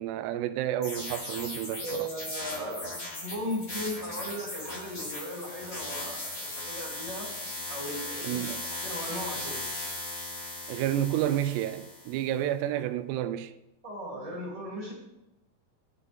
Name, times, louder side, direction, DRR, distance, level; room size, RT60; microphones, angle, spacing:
voice 1, 0.0-2.1 8.2-8.6 10.7-13.5, right 12 dB, 90° right, 2.7 m, -30 dB
sound 1, 0.8-12.2, left 2 dB, 25° left, 2.2 m, -38 dB
voice 2, 1.8-7.3 7.7-8.4 8.8-9.6 13.8-14.9, equal, 10° right, 2.5 m, -37 dB
20.5 x 6.9 x 3.6 m
omnidirectional pair, 4.7 m